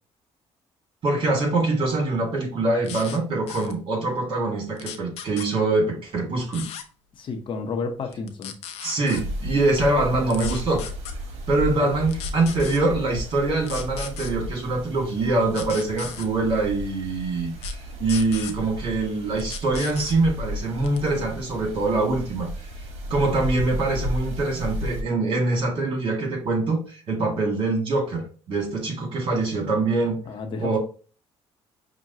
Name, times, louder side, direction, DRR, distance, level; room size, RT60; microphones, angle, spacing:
voice 1, 1.0-6.7 8.8-10.8 11.5-22.7 23.1-30.2 30.6-30.8, right 2 dB, 50° right, 0 dB, 1.8 m, -24 dB
sound 1, 2.8-3.2 3.5-3.7 4.8-5.5 6.5-6.8 8.1-9.2 10.3-11.1 12.1-12.8 13.6-14.3 15.5-16.3 17.6-17.7 18.1-18.5 19.4-20.2 20.8-21.1, left 9 dB, 80° left, 0.5 m, -36 dB
voice 2, 7.1-8.5 11.8-11.9 30.2-30.8, left 4 dB, 50° left, 4 dB, 0.8 m, -31 dB
sound 2, 9.1-25.0, equal, 75° right, 1.0 m, -34 dB
5.8 x 2.2 x 2.7 m, 0.39 s
cardioid pair, 85°, 11 cm